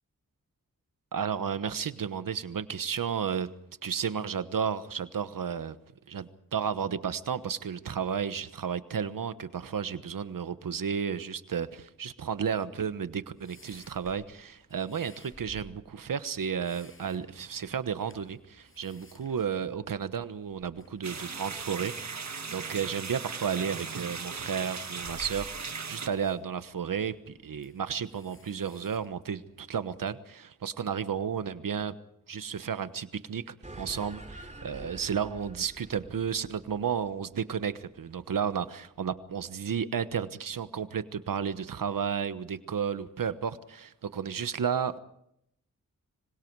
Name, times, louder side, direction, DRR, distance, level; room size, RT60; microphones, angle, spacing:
voice 1, 1.1-3.5 3.8-5.8 6.1-31.9 32.3-45.0, right 7 dB, 85° right, 12 dB, 1.2 m, -33 dB
sound 1, 13.0-30.0, left 1 dB, 40° left, 6.6 m, -56 dB
sound 2, 21.0-26.1, right 5 dB, 55° right, 1.6 m, -38 dB
sound 3, 33.6-38.4, right 1 dB, 20° right, 2.8 m, -47 dB
25.5 x 25.0 x 4.7 m, 0.76 s
wide cardioid pair, 65°, 32 cm